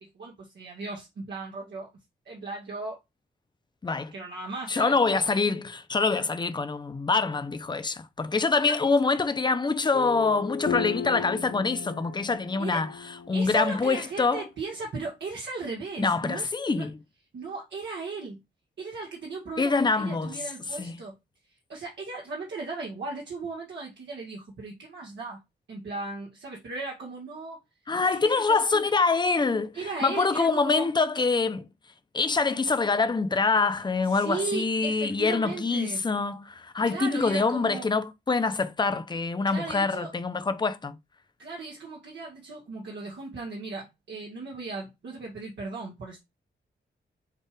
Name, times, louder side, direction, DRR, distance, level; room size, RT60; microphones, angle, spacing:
voice 1, 0.0-1.9 2.3-3.0 4.1-5.0 8.6-8.8 12.6-12.8 13.3-16.9 17.3-18.4 18.8-21.2 21.7-25.4 25.7-27.6 28.0-28.9 29.7-30.9 34.1-36.0 36.9-37.9 39.5-40.1 41.4-46.2, right 3 dB, 70° right, 1.6 m, -36 dB
voice 2, 3.8-4.1 4.7-12.9 13.3-14.4 16.0-17.0 19.6-20.4 20.8-21.0 27.9-31.7 32.1-41.0, left 4 dB, 25° left, 0.6 m, -25 dB
sound 1, 9.9-14.4, left 6 dB, 70° left, 0.9 m, -36 dB
6.6 x 2.4 x 3.3 m
cardioid pair, 90°, 19 cm